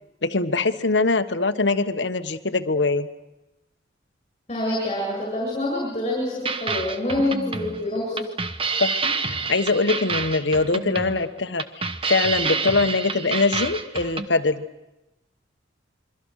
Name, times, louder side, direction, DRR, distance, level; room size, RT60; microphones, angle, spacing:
voice 1, 0.2-3.1 8.8-14.6, left 3 dB, 70° left, 11 dB, 1.3 m, -23 dB
voice 2, 4.5-8.2, left 1 dB, 35° left, -3 dB, 7.9 m, -26 dB
sound 1, 6.5-14.3, right 4 dB, 30° right, 1.1 m, -28 dB
27.0 x 24.0 x 6.5 m, 0.95 s
head